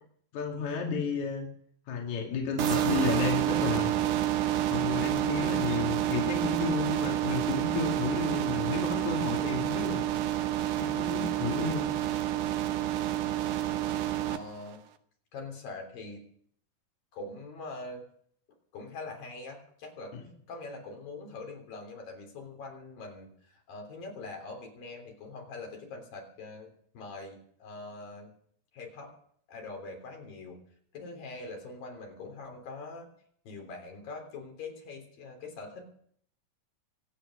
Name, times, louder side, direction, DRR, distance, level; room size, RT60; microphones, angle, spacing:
voice 1, 0.3-1.5 1.9-3.9 4.7-10.0 10.8-11.9 20.1-20.2, left 5 dB, 55° left, -1 dB, 3.4 m, -32 dB
sound 1, 2.6-14.4, right 13 dB, 70° right, 2.2 m, -29 dB
voice 2, 14.3-14.8 15.3-16.2 17.1-18.0 18.7-20.1 20.5-26.7 27.0-28.3 28.7-29.1 29.5-30.6 30.9-33.1 33.5-35.9, left 3 dB, 70° left, 1 dB, 5.1 m, -43 dB
24.0 x 9.0 x 6.4 m, 0.63 s
omnidirectional pair, 4.2 m